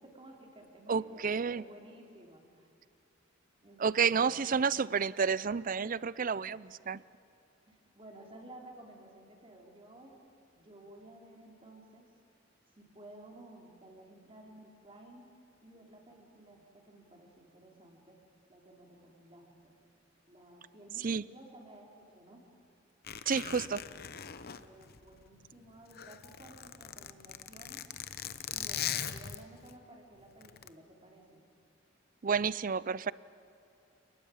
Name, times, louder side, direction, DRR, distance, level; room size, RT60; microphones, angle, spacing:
voice 1, 0.0-2.7 3.6-4.4 6.2-6.6 7.7-10.2 10.6-12.1 12.7-15.3 15.6-18.2 18.5-19.7 20.3-22.4 24.6-27.9 28.5-31.4, right 1 dB, 30° right, 0 dB, 4.2 m, -54 dB
voice 2, 0.9-1.6 3.8-7.0 21.0-21.2 23.3-23.8 32.2-33.1, right 6 dB, 45° right, 20 dB, 0.5 m, -30 dB
Zipper (clothing), 23.0-25.5 25.8-29.7 30.4-30.7, left 9 dB, 55° left, 0.9 m, -40 dB
29.0 x 20.0 x 8.8 m, 2.7 s
head